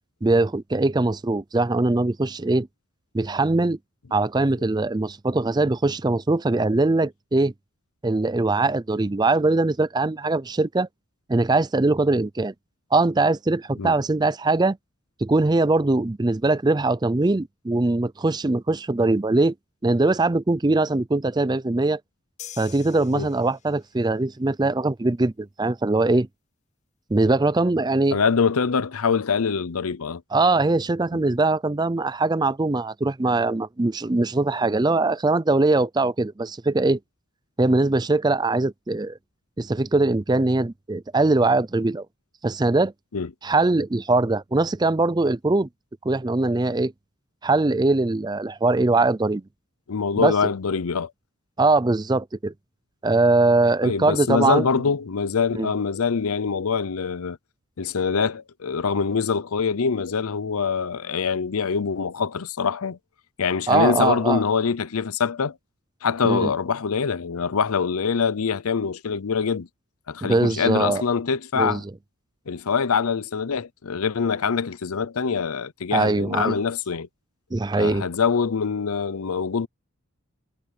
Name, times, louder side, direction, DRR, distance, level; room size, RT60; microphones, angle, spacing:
voice 1, 0.2-2.7 3.1-3.8 4.1-7.5 8.0-10.9 11.3-12.5 12.9-14.8 15.2-19.5 19.8-22.0 22.6-26.3 27.1-28.2 30.3-37.0 37.6-39.2 39.6-42.1 42.4-42.9 43.4-45.7 46.0-46.9 47.4-49.4 50.2-50.5 51.6-52.5 53.0-54.7 55.5-55.7 63.7-64.4 66.2-66.5 70.2-71.0 71.6-71.8 75.9-76.6 77.5-78.0, right 2 dB, 20° right, 0.4 m, -21 dB
sound 1, 22.4-24.0, left 11 dB, 30° left, 0.8 m, -43 dB
voice 2, 28.1-30.2 31.1-31.2 43.1-43.3 49.9-51.1 53.8-57.4 57.8-63.0 63.4-65.6 66.0-69.7 70.1-71.8 72.5-77.1 77.6-79.7, left 5 dB, 85° left, 0.7 m, -24 dB
head